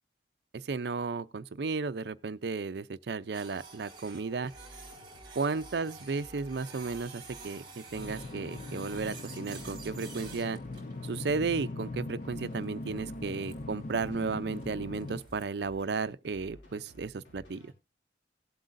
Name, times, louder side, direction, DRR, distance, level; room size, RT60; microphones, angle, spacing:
voice 1, 0.5-4.5 5.4-10.6 11.0-17.7, right 4 dB, 65° right, 0.5 m, -34 dB
Printer, 3.3-15.4, right 4 dB, 25° right, 3.4 m, -51 dB
sound 1, 4.5-17.7, equal, 80° left, 3.2 m, -54 dB
sound 2, 7.9-15.2, left 2 dB, 45° left, 0.6 m, -41 dB
18.5 x 7.8 x 2.6 m
head